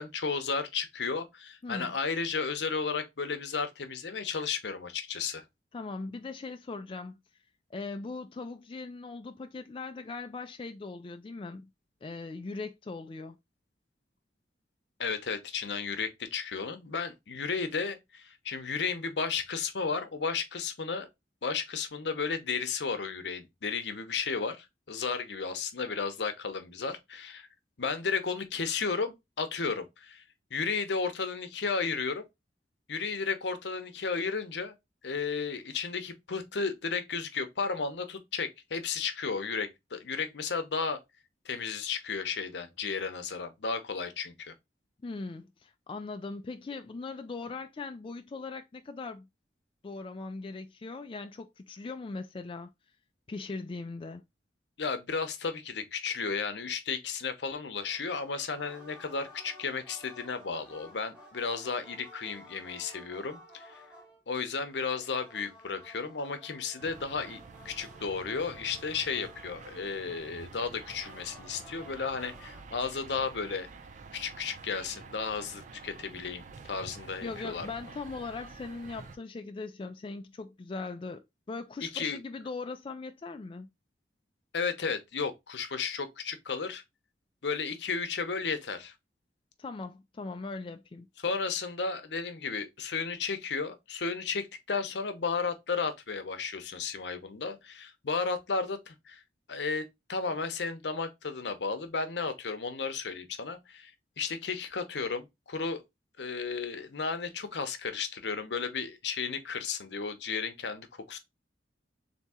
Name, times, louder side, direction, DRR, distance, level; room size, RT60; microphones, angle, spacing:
voice 1, 0.0-5.4 15.0-21.1 21.4-27.5 27.8-30.2 30.5-32.2 32.9-34.7 35.0-41.0 41.4-44.5 54.8-63.7 64.3-67.4 67.6-73.7 74.1-77.7 81.8-82.2 84.5-86.8 87.4-88.9 91.2-99.2 99.5-103.9 104.2-105.8 106.2-111.2, left 5 dB, 80° left, 0.7 m, -33 dB
voice 2, 1.6-1.9 5.7-7.2 7.7-11.7 12.0-13.4 45.0-49.3 49.8-52.7 53.3-54.2 77.2-83.7 89.6-91.1, left 3 dB, 30° left, 0.3 m, -40 dB
sound 1, 57.7-64.2 64.7-70.1 70.7-72.6, left 1 dB, 5° right, 1.2 m, -54 dB
sound 2, 66.8-79.2, right 4 dB, 45° right, 0.5 m, -49 dB
3.5 x 2.8 x 4.1 m
head